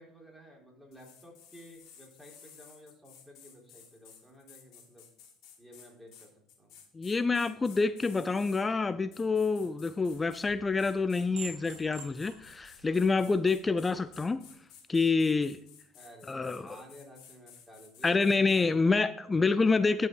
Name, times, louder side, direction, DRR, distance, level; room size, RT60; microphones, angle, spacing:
voice 1, 0.0-5.1 5.6-6.8 15.9-19.0, equal, 5° right, 3.7 m, -53 dB
sound 1, 0.9-8.6 9.1-10.5 10.8-18.7, left 8 dB, 60° left, 2.6 m, -55 dB
voice 2, 6.9-14.5 14.9-15.6 16.3-16.8 18.0-20.1, left 4 dB, 20° left, 0.4 m, -27 dB
sound 2, 10.1-14.3, right 6 dB, 60° right, 1.6 m, -49 dB
11.0 x 5.6 x 4.7 m
supercardioid pair, 85°, 0 cm